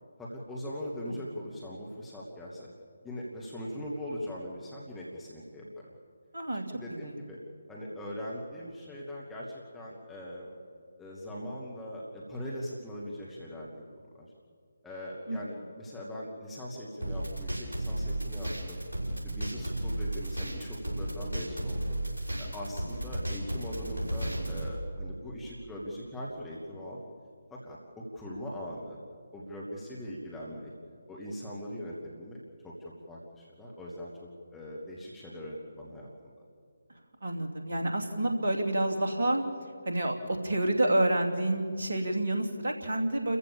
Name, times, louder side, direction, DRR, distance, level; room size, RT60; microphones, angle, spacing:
voice 1, 0.2-2.7 3.0-5.9 6.5-7.4 7.7-10.5 11.0-13.9 14.1-14.3 14.8-18.8 19.2-22.0 22.4-27.0 27.5-29.0 29.3-30.7 31.1-32.4 32.6-36.1 36.4-36.5, equal, 5° left, -6 dB, 2.3 m, -41 dB
voice 2, 6.3-7.1 15.3-15.4 37.2-39.4 39.8-43.4, right 1 dB, 55° right, 3 dB, 2.9 m, -29 dB
sound 1, 17.0-24.7, right 1 dB, 80° left, 6.2 m, -33 dB
30.0 x 15.0 x 7.1 m, 2.2 s
figure-of-eight pair, 150°, 0 cm